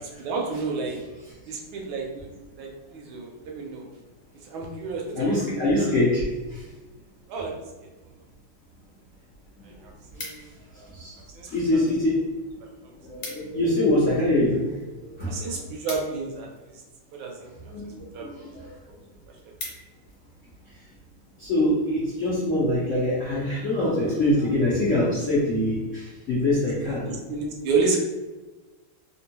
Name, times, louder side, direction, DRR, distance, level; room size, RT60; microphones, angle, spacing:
voice 1, 0.2-1.0 1.5-2.3 2.6-3.9 4.4-5.4 5.8-5.9 7.3-7.6 9.6-10.5 10.8-10.9 11.3-11.8 15.2-16.8 17.1-17.5 17.8-18.3 19.3-19.5 27.0-28.0, right 4 dB, 75° right, 0 dB, 1.3 m, -31 dB
voice 2, 5.2-6.7 9.6-9.7 10.1-10.3 10.7-11.1 11.5-12.3 13.0-15.6 17.5-18.7 20.6-20.8 21.4-27.1, left 1 dB, 80° left, -8 dB, 0.6 m, -24 dB
sound 1, 9.8-10.8 11.5-12.0 12.3-12.4 12.7-12.8 13.0-13.6 14.0-16.8 17.6-17.9 18.4-18.5 18.8-18.9 19.2-20.2 20.7-20.9, left 2 dB, 65° left, 1.1 m, -41 dB
3.5 x 2.2 x 2.8 m, 1.2 s
omnidirectional pair, 2.4 m